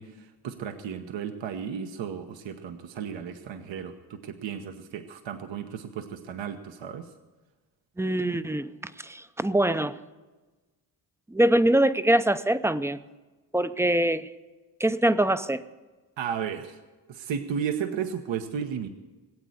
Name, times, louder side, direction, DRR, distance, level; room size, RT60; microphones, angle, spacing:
voice 1, 0.0-7.1 16.2-16.8 17.1-18.9, right 7 dB, 75° right, 7 dB, 1.1 m, -34 dB
voice 2, 8.0-10.0 11.3-13.0 13.5-14.3 14.8-15.6, right 1 dB, 5° right, 13 dB, 0.5 m, -24 dB
19.5 x 8.4 x 7.8 m, 1.2 s
cardioid pair, 85°, 45 cm